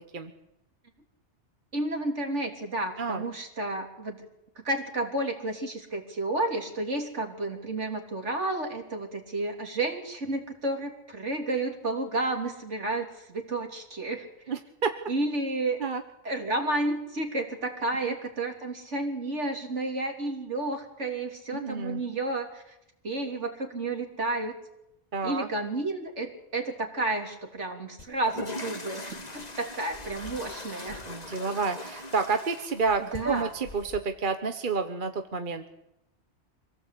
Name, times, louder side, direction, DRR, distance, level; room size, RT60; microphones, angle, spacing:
voice 1, 1.7-4.2 4.6-14.3 15.1-15.8 16.2-22.8 23.0-24.6 25.2-31.0 33.1-33.5, right 2 dB, 90° right, 3 dB, 3.7 m, -31 dB
voice 2, 3.0-3.3 14.5-14.9 15.8-16.0 18.0-18.2 21.5-22.0 25.1-25.5 31.1-35.6, right 4 dB, 45° right, 7 dB, 1.3 m, -29 dB
sound 1, 28.0-34.0, left 2 dB, 35° left, 1.8 m, -41 dB
26.0 x 17.0 x 8.4 m, 0.87 s
omnidirectional pair, 1.2 m